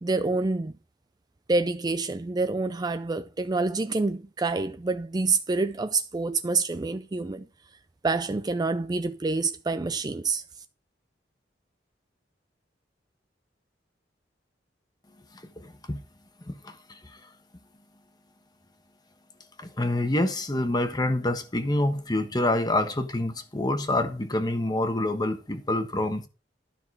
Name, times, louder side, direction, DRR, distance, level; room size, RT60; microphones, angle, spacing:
voice 1, 0.0-0.7 1.5-7.5 8.0-10.4, right 3 dB, 20° right, 0.4 m, -27 dB
voice 2, 15.3-16.0 16.5-17.3 19.6-26.3, left 1 dB, 20° left, 1.2 m, -27 dB
12.5 x 5.9 x 4.7 m
head